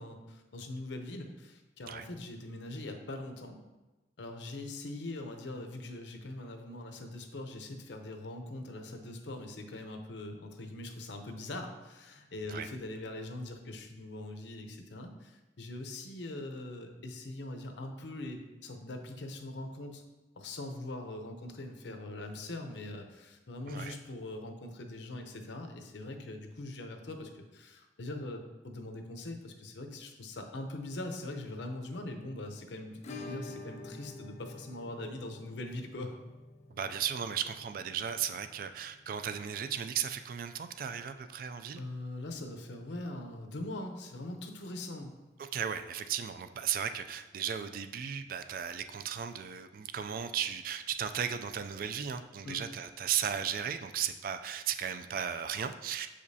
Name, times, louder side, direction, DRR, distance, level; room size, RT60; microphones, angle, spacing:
voice 1, 0.0-3.6 4.2-20.0 20.4-36.1 41.8-45.1 52.4-52.6, left 2 dB, 75° left, 5 dB, 0.7 m, -42 dB
Acoustic guitar / Strum, 33.0-41.6 41.9-42.0 42.3-42.4 42.8-42.9 44.9-45.0 46.1-46.2, left 2 dB, 40° left, 0.5 m, -49 dB
voice 2, 36.7-41.8 45.4-56.1, right 8 dB, 50° right, 10 dB, 0.3 m, -35 dB
7.0 x 5.0 x 2.7 m, 1.1 s
head